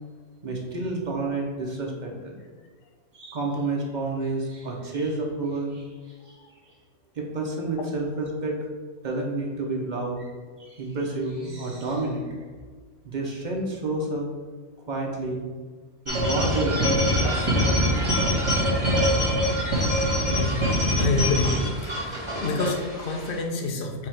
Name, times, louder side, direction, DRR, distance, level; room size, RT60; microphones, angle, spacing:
voice 1, 0.4-2.3 3.1-5.8 7.2-8.5 9.0-10.3 10.6-12.3 13.0-14.3 14.9-15.4 16.1-17.4, right 2 dB, 45° right, -1 dB, 0.7 m, -29 dB
sound 1, 16.1-23.4, equal, 25° right, 1.0 m, -24 dB
voice 2, 20.4-20.7 21.0-21.6 21.8-24.1, left 3 dB, 55° left, 2 dB, 0.7 m, -28 dB
4.7 x 2.4 x 4.4 m, 1.5 s
omnidirectional pair, 1.4 m